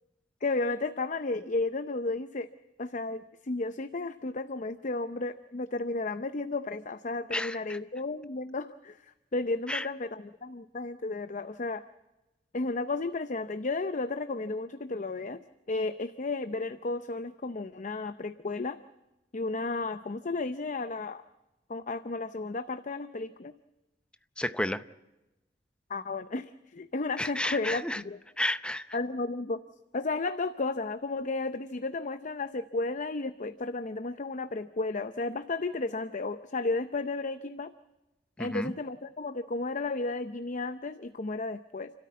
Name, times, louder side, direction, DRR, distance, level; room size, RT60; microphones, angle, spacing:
voice 1, 0.4-2.5 2.8-11.8 12.5-15.4 15.7-18.8 19.3-21.2 21.7-23.5 25.9-28.2 28.9-29.6 29.9-37.7 38.4-41.9, left 3 dB, 45° left, 10 dB, 0.7 m, -33 dB
voice 2, 7.3-7.8 9.7-9.9 24.4-24.8 27.2-28.0 28.4-29.0 38.4-38.7, left 1 dB, 5° left, 12 dB, 0.7 m, -31 dB
29.5 x 13.0 x 8.5 m, 1.0 s
head